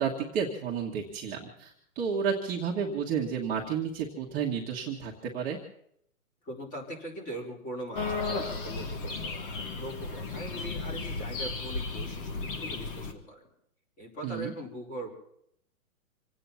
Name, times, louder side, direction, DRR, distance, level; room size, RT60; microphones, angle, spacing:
voice 1, 0.0-5.6 14.2-14.5, right 7 dB, 20° right, -2 dB, 1.7 m, -31 dB
voice 2, 6.4-13.5 14.0-15.1, right 1 dB, 20° left, 1 dB, 4.3 m, -41 dB
sound 1, 7.9-13.1, left 3 dB, 35° left, 2.1 m, -34 dB
27.0 x 9.1 x 5.7 m, 0.71 s
hypercardioid pair, 155°, 44 cm